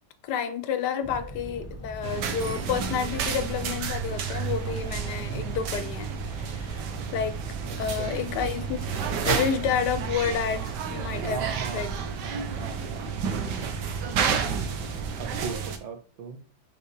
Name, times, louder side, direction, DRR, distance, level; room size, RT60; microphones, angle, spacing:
voice 1, 0.2-6.8 7.1-7.4 7.8-8.8 9.2-11.4 11.7-12.0, left 7 dB, 75° left, 1.0 m, -30 dB
sound 1, 1.0-15.5, equal, 15° left, 0.5 m, -42 dB
sound 2, 2.0-15.8, right 7 dB, 70° right, 1.3 m, -31 dB
voice 2, 7.6-8.2 11.2-13.1 13.6-13.8 15.2-16.4, right 6 dB, 85° right, 1.7 m, -37 dB
5.7 x 5.6 x 3.2 m
omnidirectional pair, 2.1 m